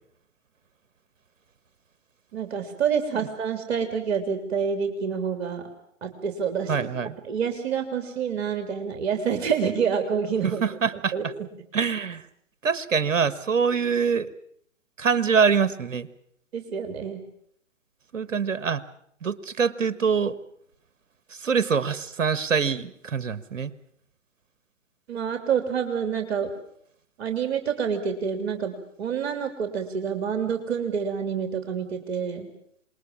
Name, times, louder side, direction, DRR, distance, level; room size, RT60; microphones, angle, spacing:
voice 1, 2.3-5.6 6.0-6.9 7.2-10.6 11.1-11.2 16.5-17.2 25.1-26.5 27.2-32.5, right 7 dB, 55° right, 6 dB, 3.2 m, -27 dB
voice 2, 6.7-7.1 10.4-11.3 11.7-12.2 12.6-14.3 15.0-16.1 18.1-18.8 19.2-20.4 21.4-23.7, right 6 dB, 75° right, 16 dB, 1.5 m, -24 dB
27.0 x 21.5 x 7.2 m, 0.69 s
figure-of-eight pair, 125°, 39 cm